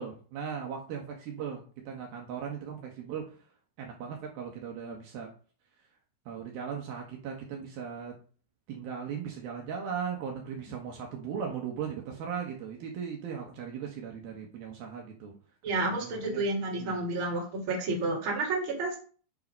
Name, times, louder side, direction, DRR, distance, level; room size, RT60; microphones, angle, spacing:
voice 1, 0.0-3.4 3.8-5.3 6.3-8.1 8.7-15.3 15.7-16.4 16.8-17.0, right 7 dB, 70° right, 1 dB, 3.2 m, -38 dB
voice 2, 15.6-19.0, right 2 dB, 35° right, -2 dB, 3.0 m, -30 dB
8.2 x 5.7 x 5.4 m, 0.40 s
omnidirectional pair, 4.7 m